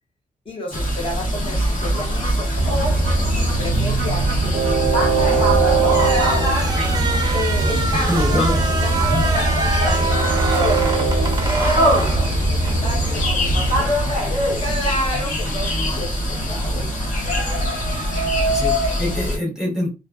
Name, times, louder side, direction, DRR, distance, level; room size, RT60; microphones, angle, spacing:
voice 1, 0.5-3.0 3.3-6.8 7.3-10.1 10.5-14.0 14.6-16.9, left 1 dB, 40° left, 0 dB, 0.8 m, -30 dB
sound 1, 0.7-19.4, equal, 65° left, 1.2 m, -23 dB
Train, 2.6-13.8, right 3 dB, 85° right, 0.4 m, -22 dB
sound 2, 5.8-12.8, right 4 dB, 30° right, 0.4 m, -27 dB
voice 2, 8.1-8.6 9.1-9.3 18.4-19.9, left 1 dB, 5° right, -4 dB, 0.8 m, -24 dB
2.5 x 2.4 x 2.3 m, 0.27 s
wide cardioid pair, 180°, 14 cm